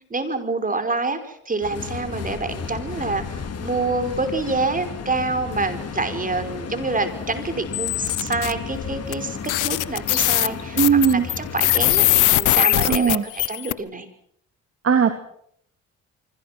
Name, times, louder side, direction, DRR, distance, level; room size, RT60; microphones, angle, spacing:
voice 1, 0.1-12.0 12.4-14.1, right 3 dB, 25° right, 7 dB, 5.2 m, -27 dB
sound 1, 1.6-12.5, left 6 dB, 55° left, 4.5 m, -33 dB
sound 2, 7.7-8.5 9.1-9.2 9.5-13.7, left 17 dB, 90° left, 1.1 m, -20 dB
voice 2, 10.8-11.2 12.9-13.2 14.8-15.2, right 7 dB, 50° right, 7 dB, 2.7 m, -18 dB
26.0 x 25.5 x 6.0 m, 0.68 s
cardioid pair, 90°, 30 cm